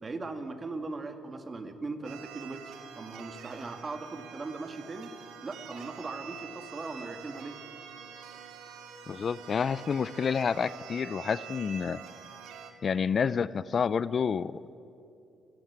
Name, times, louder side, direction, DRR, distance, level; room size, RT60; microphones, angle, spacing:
voice 1, 0.0-5.2 5.4-7.6, right 3 dB, 30° right, 7 dB, 2.2 m, -39 dB
sound 1, 2.0-12.7, right 7 dB, 90° right, 2.3 m, -46 dB
voice 2, 9.1-12.0 12.8-14.6, left 6 dB, 45° left, 18 dB, 0.5 m, -29 dB
28.5 x 14.0 x 8.9 m, 2.8 s
cardioid pair, 90°, 0 cm